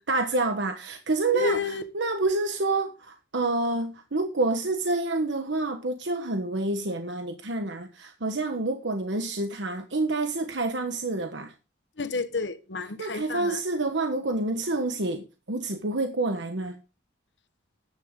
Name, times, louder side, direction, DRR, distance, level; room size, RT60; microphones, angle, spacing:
voice 1, 0.0-11.5 13.0-16.8, right 2 dB, 85° right, 1.3 m, -28 dB
voice 2, 1.3-1.8 12.0-13.6, left 4 dB, 75° left, 1.3 m, -30 dB
14.0 x 10.5 x 3.8 m
head